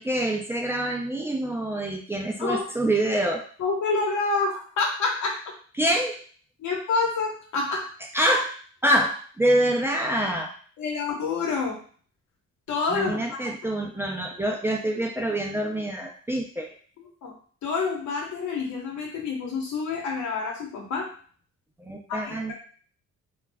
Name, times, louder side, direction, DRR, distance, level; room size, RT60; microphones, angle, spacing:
voice 1, 0.0-3.5 5.8-6.2 8.1-10.5 12.9-16.7 21.8-22.5, right 1 dB, 10° right, 0 dB, 0.5 m, -26 dB
voice 2, 3.6-5.4 6.6-7.9 10.8-11.8 12.7-13.2 17.2-17.3 17.6-21.1 22.1-22.2, left 4 dB, 70° left, -1 dB, 1.0 m, -27 dB
2.4 x 2.1 x 3.3 m, 0.43 s
cardioid pair, 90°, 30 cm